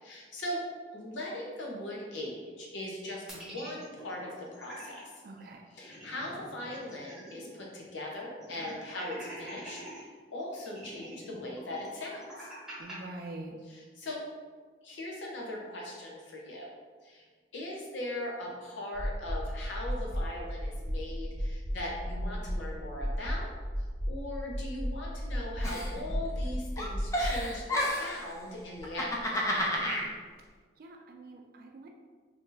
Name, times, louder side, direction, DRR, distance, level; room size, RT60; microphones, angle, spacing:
voice 1, 0.0-0.6 0.9-5.1 5.7-12.5 13.7-14.2 14.8-16.7 17.0-17.2 17.5-23.5 23.8-29.1, left 1 dB, 85° left, -3 dB, 0.8 m, -40 dB
sound 1, 3.3-5.0 5.4-5.5 5.8-7.5 7.8-7.9 8.4-10.0 10.7-13.0, right 1 dB, 5° right, 1.0 m, -46 dB
voice 2, 5.2-5.7 12.8-13.6 29.8-30.2 30.8-31.9, right 2 dB, 50° right, 2 dB, 0.3 m, -45 dB
sound 2, 18.9-27.4, equal, 55° left, 1.5 m, -34 dB
Giggle, 25.6-26.5 26.8-28.2 28.8-30.1, equal, 15° left, 0.4 m, -31 dB
2.8 x 2.6 x 3.8 m, 1.5 s
head